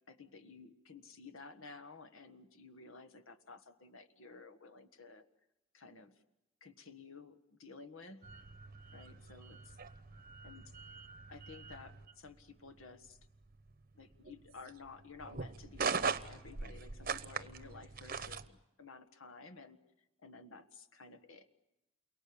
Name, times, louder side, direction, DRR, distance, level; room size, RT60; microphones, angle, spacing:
voice 1, 0.1-5.3 5.7-6.2 6.6-8.3 8.9-9.8 10.4-10.8 11.3-13.2 13.9-19.8 20.2-21.5, left 4 dB, 70° left, 10 dB, 1.6 m, -54 dB
sound 1, 8.2-18.5, right 5 dB, 40° right, 0.9 m, -41 dB
29.0 x 23.5 x 8.6 m, 0.93 s
head